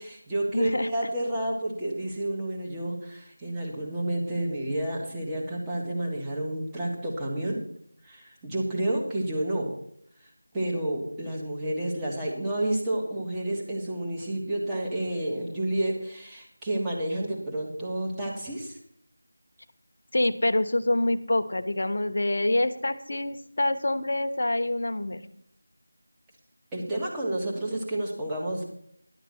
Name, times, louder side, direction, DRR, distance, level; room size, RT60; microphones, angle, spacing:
voice 1, 0.0-7.6 8.0-9.7 10.5-18.8 26.7-28.6, right 1 dB, 10° right, -4 dB, 1.6 m, -30 dB
voice 2, 0.5-0.9 20.1-25.2, left 1 dB, 55° left, 8 dB, 1.0 m, -26 dB
11.5 x 8.1 x 5.7 m, 0.68 s
figure-of-eight pair, 175°, 0 cm